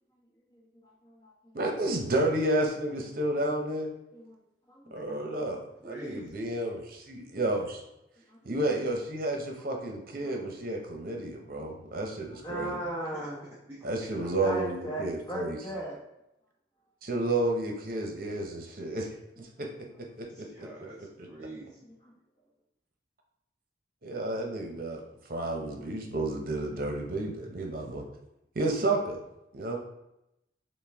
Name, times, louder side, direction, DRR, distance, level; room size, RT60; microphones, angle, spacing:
voice 1, 0.5-1.5 4.1-4.3 4.7-4.9 8.3-8.4 10.2-10.3 12.4-13.5 14.4-16.0 20.8-21.0 21.9-22.0, right 1 dB, 25° left, -3 dB, 1.0 m, -38 dB
voice 2, 1.5-3.9 4.9-7.8 8.4-12.8 13.8-15.6 17.0-19.1 19.4-19.7 20.0-20.7 21.2-21.3 24.0-25.0 25.3-28.0 28.5-29.2 29.5-29.8, right 2 dB, 50° right, 2 dB, 0.8 m, -31 dB
voice 3, 4.9-5.5 5.8-6.4 13.1-14.4 14.8-15.2 20.3-21.9, right 1 dB, 15° right, -5 dB, 0.6 m, -47 dB
5.8 x 2.2 x 3.4 m, 0.86 s
head